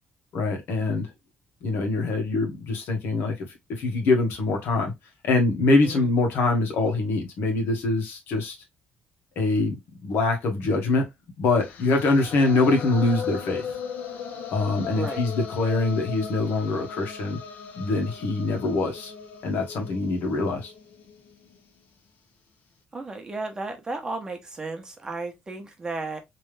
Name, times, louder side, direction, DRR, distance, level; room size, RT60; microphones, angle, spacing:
voice 1, 0.3-1.1 1.6-4.9 5.2-8.5 9.3-9.7 10.0-11.1 11.4-13.6 14.5-17.4 17.8-19.1 19.4-20.7, left 3 dB, 85° left, 1.6 m, -24 dB
sound 1, 11.6-21.7, left 6 dB, 65° left, 1.1 m, -38 dB
voice 2, 14.9-15.2 22.9-26.2, right 3 dB, 20° right, 1.0 m, -34 dB
3.4 x 3.3 x 3.3 m
cardioid pair, 155°, 4 cm